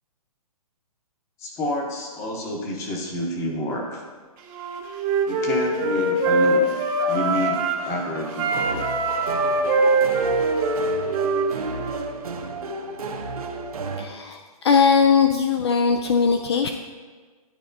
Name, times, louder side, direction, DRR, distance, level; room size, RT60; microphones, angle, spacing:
voice 1, 1.4-4.0 5.3-6.7 7.1-8.8, left 1 dB, 15° left, 1 dB, 0.9 m, -29 dB
Wind instrument woodwind instrument, 4.5-7.9 8.3-12.0, right 2 dB, 20° right, 0.7 m, -23 dB
sound 1, 6.9-14.1, right 3 dB, 70° right, 1.0 m, -33 dB
voice 2, 14.0-16.7, left 6 dB, 45° left, 6 dB, 0.4 m, -20 dB
11.5 x 4.1 x 2.7 m, 1.4 s
hypercardioid pair, 155°, 19 cm